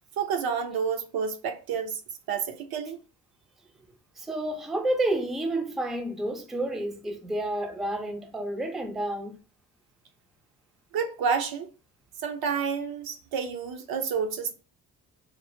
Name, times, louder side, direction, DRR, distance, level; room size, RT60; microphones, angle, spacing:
voice 1, 0.2-2.0 2.3-3.0 10.9-11.7 12.2-14.5, right 6 dB, 75° right, 0.6 m, -29 dB
voice 2, 4.2-9.4, right 1 dB, ahead, 0.4 m, -30 dB
3.0 x 2.1 x 2.6 m
cardioid pair, 85°, 36 cm